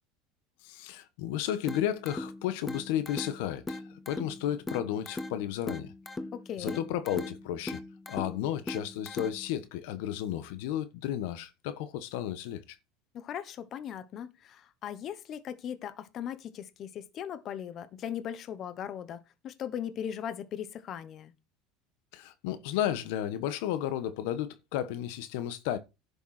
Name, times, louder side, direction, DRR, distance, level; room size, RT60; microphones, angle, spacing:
voice 1, 0.6-5.9 6.6-7.8 8.1-12.8 22.1-25.8, left 11 dB, 75° left, 1.3 m, -33 dB
sound 1, 1.7-9.7, left 2 dB, 15° left, 0.9 m, -40 dB
voice 2, 6.3-6.8 13.1-21.3, left 9 dB, 40° left, 1.1 m, -39 dB
11.0 x 6.9 x 4.3 m
supercardioid pair, 125°, 0 cm